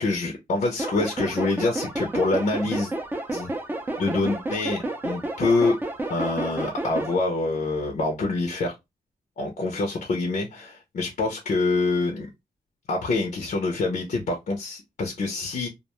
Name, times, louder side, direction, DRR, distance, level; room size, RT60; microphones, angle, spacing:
voice 1, 0.0-2.9 3.3-3.5 4.0-5.8 6.1-8.7 9.4-12.3 12.9-15.7, left 3 dB, 60° left, 0.6 m, -26 dB
sound 1, 0.8-7.1, right 2 dB, 15° right, 0.4 m, -31 dB
2.4 x 2.2 x 2.9 m
wide cardioid pair, 165°, 15 cm